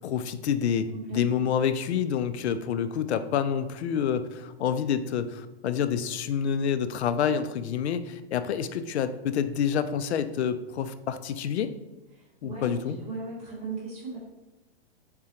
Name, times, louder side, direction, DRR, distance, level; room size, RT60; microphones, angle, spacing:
voice 1, 0.0-11.7 12.4-13.0, left 8 dB, 80° left, 12 dB, 0.5 m, -28 dB
voice 2, 0.9-1.4 12.1-14.2, right 4 dB, 5° right, -10 dB, 0.3 m, -38 dB
4.1 x 3.7 x 2.8 m, 1.0 s
hypercardioid pair, 160°, 32 cm